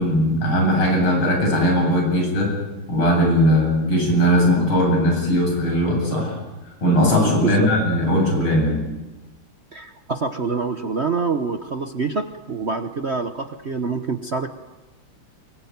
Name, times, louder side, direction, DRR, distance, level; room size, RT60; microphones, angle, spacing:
voice 1, 0.0-2.5 2.9-6.4 6.8-8.9, equal, 80° left, 1 dB, 8.9 m, -19 dB
voice 2, 7.3-7.7 9.7-14.5, right 4 dB, 40° right, 8 dB, 1.0 m, -26 dB
23.5 x 22.0 x 9.5 m, 1.1 s
omnidirectional pair, 2.3 m